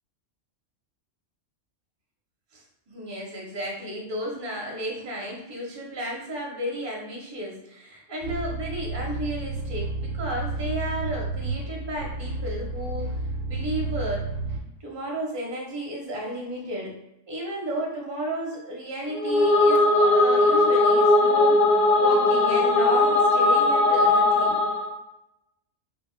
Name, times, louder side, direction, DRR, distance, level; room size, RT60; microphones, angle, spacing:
voice 1, 2.5-13.1 13.4-14.3 14.8-17.0 17.3-21.6 22.0-24.6, right 1 dB, 25° right, -2 dB, 0.7 m, -33 dB
sound 1, 8.2-14.6, right 2 dB, 75° right, 1.0 m, -31 dB
sound 2, 19.1-24.9, left 2 dB, 85° left, 1.0 m, -19 dB
5.0 x 2.3 x 2.2 m, 0.85 s
omnidirectional pair, 1.4 m